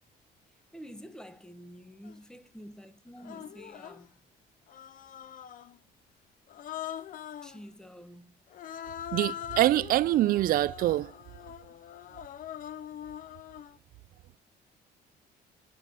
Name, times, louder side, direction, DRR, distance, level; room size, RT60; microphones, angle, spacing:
voice 1, 0.7-4.1 7.4-8.4, equal, 5° left, 1.0 m, -48 dB
Human voice, 2.0-2.2 3.2-4.1 4.7-5.8 6.5-7.6 8.5-13.8, left 11 dB, 55° left, 0.7 m, -42 dB
voice 2, 9.1-11.1, right 14 dB, 60° right, 0.4 m, -25 dB
9.2 x 6.3 x 6.6 m
cardioid pair, 110°, 17 cm